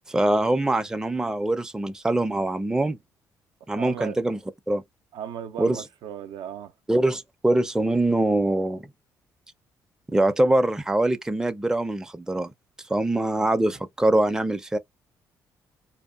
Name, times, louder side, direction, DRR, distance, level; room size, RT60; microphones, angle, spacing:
voice 1, 0.1-3.0 3.7-4.4 4.7-4.8 5.6-5.8 6.9-8.9 10.1-12.5 12.9-14.8, right 1 dB, 5° right, 0.4 m, -23 dB
voice 2, 3.8-4.2 5.1-6.7 13.1-13.8, right 9 dB, 70° right, 0.4 m, -37 dB
2.7 x 2.3 x 2.2 m
hypercardioid pair, 55°, 8 cm